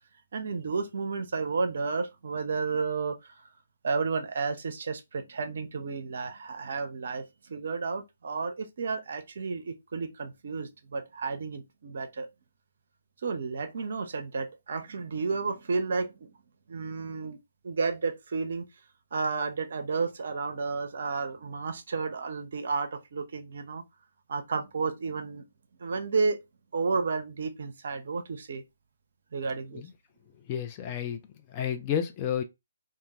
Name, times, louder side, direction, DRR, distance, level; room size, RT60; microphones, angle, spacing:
voice 1, 0.3-3.3 3.8-12.3 13.2-16.3 16.7-17.4 17.6-18.7 19.1-23.8 24.3-25.4 25.8-26.4 26.7-28.6 29.3-29.9, right 4 dB, 50° right, 0.5 m, -32 dB
voice 2, 30.5-31.2 31.5-32.4, left 9 dB, 25° left, 0.3 m, -31 dB
2.2 x 2.2 x 2.8 m
figure-of-eight pair, 135°, 0 cm